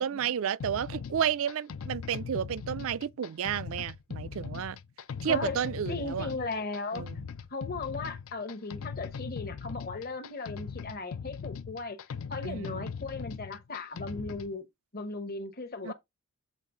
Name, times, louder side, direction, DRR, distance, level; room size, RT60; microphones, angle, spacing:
voice 1, 0.0-4.8 5.2-6.3 6.9-7.2 12.4-12.9 15.8-15.9, right 8 dB, 65° right, 0.4 m, -31 dB
sound 1, 0.6-14.5, left 6 dB, 65° left, 0.4 m, -40 dB
voice 2, 5.3-7.0 7.5-14.7 14.9-15.9, left 3 dB, 40° left, 0.9 m, -37 dB
7.4 x 4.1 x 3.7 m
head